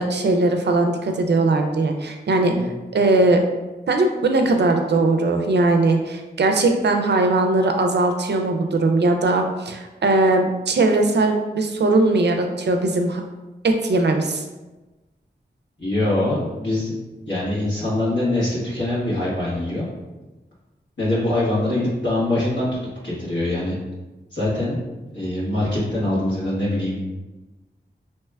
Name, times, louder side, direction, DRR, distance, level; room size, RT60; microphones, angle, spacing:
voice 1, 0.0-2.5 2.9-3.4 3.9-13.2 13.6-14.4, right 2 dB, 65° right, 4 dB, 0.4 m, -19 dB
voice 2, 15.8-16.9 17.3-19.9 21.0-22.7 23.0-23.8 24.3-24.8 25.1-27.0, left 1 dB, 75° left, -9 dB, 1.4 m, -23 dB
2.9 x 2.3 x 3.3 m, 1.1 s
wide cardioid pair, 80°, 19 cm